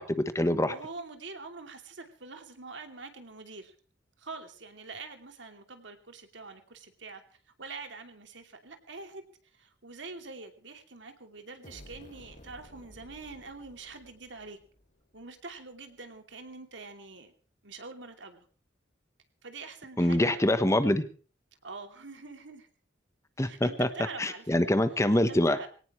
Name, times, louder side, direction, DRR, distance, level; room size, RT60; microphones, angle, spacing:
voice 1, 0.0-0.7 20.0-21.0 23.4-23.9 24.2-25.6, left 1 dB, 15° left, 11 dB, 1.1 m, -25 dB
voice 2, 0.6-3.7 4.2-9.2 9.5-14.6 15.1-17.3 17.6-18.5 19.4-20.5 21.6-22.7 23.4-24.5 25.1-25.7, right 3 dB, 75° right, 6 dB, 2.8 m, -45 dB
sound 1, 11.6-15.3, equal, 40° left, 5.5 m, -53 dB
23.0 x 18.0 x 3.2 m, 0.39 s
head